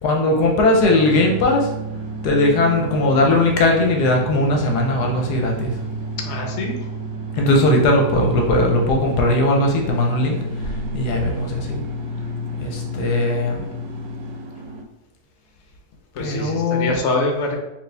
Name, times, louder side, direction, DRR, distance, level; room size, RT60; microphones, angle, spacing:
voice 1, 0.0-1.7 2.2-5.8 7.3-11.8 12.6-13.7 16.2-16.9, left 2 dB, 70° left, 1 dB, 1.1 m, -19 dB
sound 1, 0.7-14.8, equal, 80° right, 1.2 m, -30 dB
voice 2, 6.2-6.9 16.1-17.6, left 2 dB, 55° left, 2 dB, 0.8 m, -24 dB
4.3 x 2.8 x 3.3 m, 0.89 s
omnidirectional pair, 1.9 m